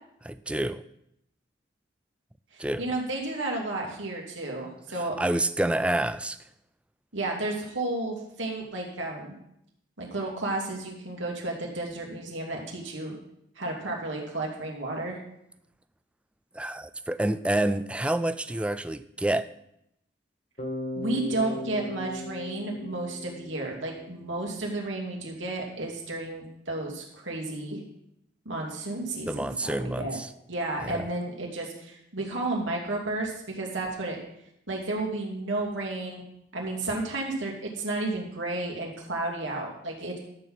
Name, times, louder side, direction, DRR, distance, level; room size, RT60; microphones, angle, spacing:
voice 1, 0.2-0.8 2.6-2.8 5.2-6.4 16.5-19.5 29.3-30.3 30.8-31.1, right 1 dB, 5° right, 11 dB, 0.3 m, -28 dB
voice 2, 2.5-5.2 7.1-9.4 10.0-13.2 13.6-15.2 20.9-27.8 28.4-30.2 30.5-34.2 34.7-36.2 36.5-40.2, right 2 dB, 85° right, -1 dB, 2.6 m, -32 dB
Bass guitar, 20.6-24.5, left 1 dB, 40° left, 1.6 m, -38 dB
12.5 x 4.3 x 7.7 m, 0.78 s
head